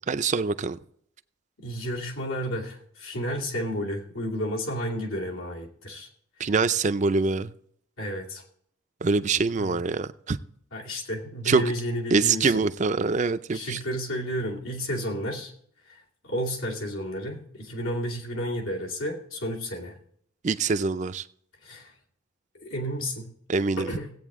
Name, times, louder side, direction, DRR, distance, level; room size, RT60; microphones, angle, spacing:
voice 1, 0.1-0.8 6.4-7.5 9.0-10.4 11.5-11.6 12.1-13.8 20.4-21.2 23.5-23.9, right 4 dB, 35° right, 0.4 m, -24 dB
voice 2, 1.6-6.1 6.4-6.5 8.0-8.4 9.6-9.8 10.7-12.6 13.5-15.5 15.8-20.0 21.6-21.9 22.5-23.3 23.8-24.1, equal, 90° left, 2.4 m, -32 dB
16.0 x 8.5 x 3.6 m
head